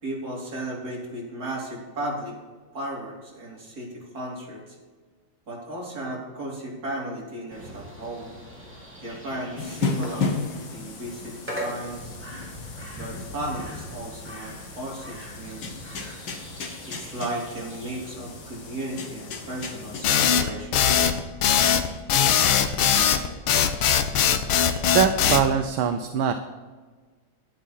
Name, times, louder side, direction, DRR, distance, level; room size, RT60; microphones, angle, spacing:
voice 1, 0.0-2.4 2.7-4.8 5.5-8.3 9.0-10.4 10.7-12.2 12.9-15.8 16.8-20.8, right 1 dB, 45° right, -3 dB, 3.7 m, -35 dB
sound 1, 7.5-19.9, equal, 5° right, 2.9 m, -41 dB
sound 2, 9.6-20.0, left 4 dB, 65° left, 2.1 m, -35 dB
sound 3, 20.0-25.5, left 8 dB, 80° left, 1.7 m, -20 dB
voice 2, 24.9-26.3, right 8 dB, 75° right, 7 dB, 1.5 m, -22 dB
11.0 x 10.0 x 4.2 m, 1.4 s
omnidirectional pair, 2.3 m